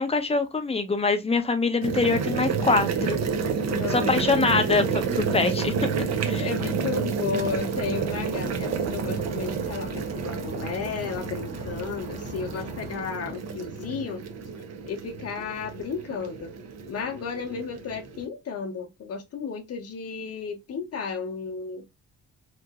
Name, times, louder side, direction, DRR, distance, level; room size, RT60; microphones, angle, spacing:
voice 1, 0.0-3.2 3.9-6.5, left 3 dB, 20° left, 0.6 m, -24 dB
sound 1, 1.8-18.2, right 5 dB, 60° right, 0.6 m, -30 dB
voice 2, 3.7-4.2 6.4-14.3 14.9-16.5 16.8-21.8, left 5 dB, 50° left, 0.8 m, -33 dB
sound 2, 7.3-13.0, right 1 dB, 25° right, 0.9 m, -42 dB
3.0 x 2.5 x 2.3 m
cardioid pair, 90°, 30 cm